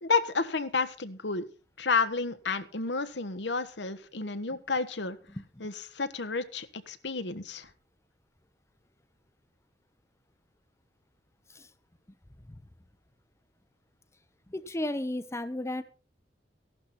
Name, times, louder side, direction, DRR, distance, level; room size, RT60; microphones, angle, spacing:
voice 1, 0.0-1.5 1.8-5.2 5.6-7.7, left 4 dB, 75° left, 10 dB, 1.3 m, -31 dB
voice 2, 14.5-15.8, left 1 dB, 15° left, 10 dB, 0.9 m, -34 dB
15.5 x 12.0 x 4.3 m, 0.35 s
head